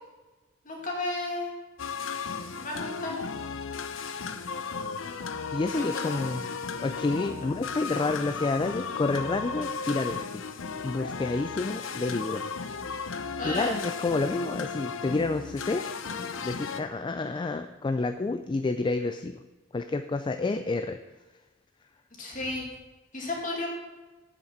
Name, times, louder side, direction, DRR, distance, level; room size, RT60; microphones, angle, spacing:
voice 1, 0.6-1.5 2.6-3.2 5.7-6.5 13.4-13.8 22.2-22.7 23.1-23.7, left 2 dB, 40° left, -2 dB, 2.4 m, -33 dB
Apollonia Organ, 1.8-16.8, left 5 dB, 80° left, 0.6 m, -35 dB
voice 2, 5.5-6.4 6.8-10.4 10.8-12.4 13.4-15.9 16.2-19.4 19.7-21.0, left 3 dB, 25° left, 9 dB, 0.3 m, -29 dB
8.2 x 7.1 x 5.8 m, 1.2 s
head